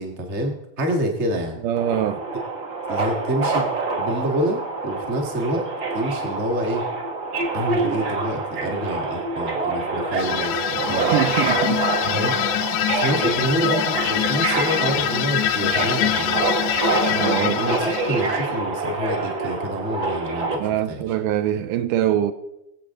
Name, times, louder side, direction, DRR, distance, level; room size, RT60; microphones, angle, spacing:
voice 1, 0.0-1.6 2.9-3.7 4.0-5.7 5.9-6.9 7.5-11.1 12.0-12.4 12.9-16.4 17.4-21.0, right 1 dB, 25° right, 1.6 m, -27 dB
voice 2, 1.6-2.2 11.1-11.9 12.8-13.0 17.1-17.6 20.6-22.3, right 11 dB, 85° right, 2.2 m, -23 dB
Subway metro underground, 1.8-20.6, right 3 dB, 45° right, 1.5 m, -26 dB
sound 1, 10.2-18.6, left 12 dB, 80° left, 1.8 m, -25 dB
23.5 x 7.8 x 3.8 m
omnidirectional pair, 3.7 m